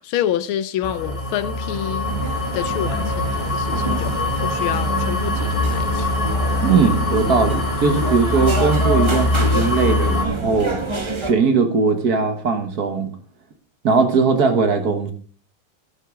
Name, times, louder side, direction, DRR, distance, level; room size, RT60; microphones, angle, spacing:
voice 1, 0.0-2.1 2.5-6.1, left 11 dB, 80° left, 1.5 m, -27 dB
sound 1, 0.8-10.3, left 2 dB, 15° left, 1.5 m, -23 dB
sound 2, 2.0-11.3, right 2 dB, 20° right, 0.8 m, -28 dB
voice 2, 6.6-10.8 11.1-13.1 13.8-15.1, right 5 dB, 50° right, 1.6 m, -19 dB
13.0 x 10.5 x 3.8 m
omnidirectional pair, 2.3 m